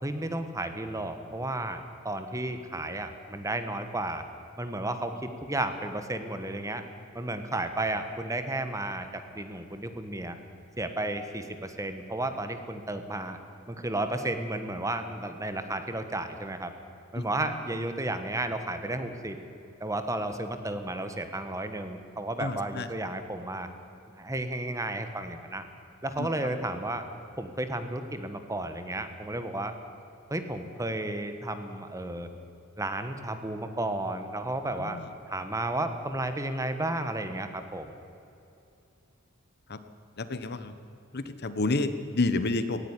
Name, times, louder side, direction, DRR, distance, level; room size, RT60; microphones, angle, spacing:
voice 1, 0.0-4.2 4.6-6.8 7.1-9.1 9.3-10.4 10.8-13.4 13.7-16.7 17.1-19.4 19.8-23.7 24.1-25.6 26.0-27.1 27.4-29.7 30.3-32.3 32.8-35.0 35.3-37.9, right 1 dB, 15° right, 8 dB, 1.4 m, -33 dB
voice 2, 22.4-22.9 26.2-26.3 34.8-35.1 39.7-39.8 40.2-40.7 41.1-42.8, left 2 dB, 50° left, 10 dB, 1.2 m, -29 dB
17.5 x 17.0 x 10.0 m, 2.8 s
head